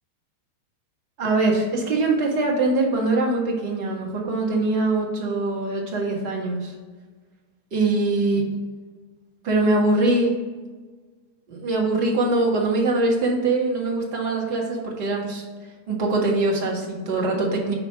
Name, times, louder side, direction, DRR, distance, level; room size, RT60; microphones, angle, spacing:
voice 1, 1.2-6.7 7.7-8.4 9.4-10.4 11.5-15.4 15.9-17.7, right 2 dB, 45° right, -1 dB, 1.4 m, -22 dB
4.9 x 4.3 x 4.9 m, 1.4 s
figure-of-eight pair, 90°, 0 cm